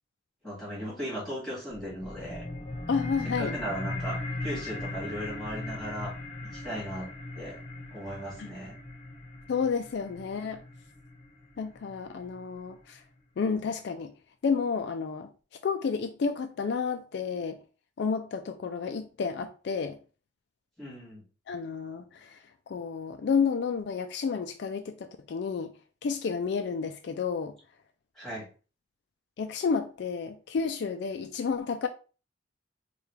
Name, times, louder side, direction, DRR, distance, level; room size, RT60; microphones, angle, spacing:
voice 1, 0.4-2.5 3.4-6.1 6.4-7.1 7.4-7.6 7.9-8.8 20.8-21.2 28.2-28.5, equal, ahead, 2.1 m, -37 dB
sound 1, 1.7-12.7, left 2 dB, 30° left, 0.9 m, -39 dB
voice 2, 2.9-3.5 8.4-8.5 9.5-10.6 11.6-13.0 13.4-14.1 14.4-15.3 15.6-17.6 18.0-20.0 21.5-22.4 22.7-25.7 26.0-27.6 29.4-31.9, left 5 dB, 60° left, 0.3 m, -31 dB
4.6 x 2.3 x 3.3 m
head